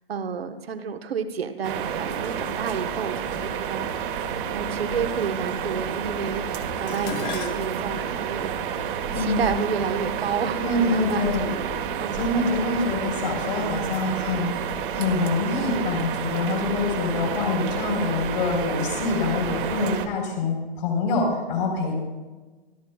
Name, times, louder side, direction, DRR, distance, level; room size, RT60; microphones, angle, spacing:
voice 1, 0.1-4.2 4.5-8.5 9.1-12.3 19.8-20.1, right 6 dB, 75° right, 8 dB, 1.2 m, -30 dB
sound 1, 1.6-20.1, right 7 dB, 55° right, 1.5 m, -30 dB
Dishes pots and pans, 6.9-11.2 12.1-12.5 12.9-13.7 14.0-14.1, left 8 dB, 35° left, 1.1 m, -40 dB
voice 2, 9.1-9.5 10.6-11.5 12.1-14.5 14.9-21.9, left 3 dB, 55° left, 0 dB, 4.2 m, -25 dB
25.5 x 12.5 x 2.3 m, 1.2 s
figure-of-eight pair, 115°, 31 cm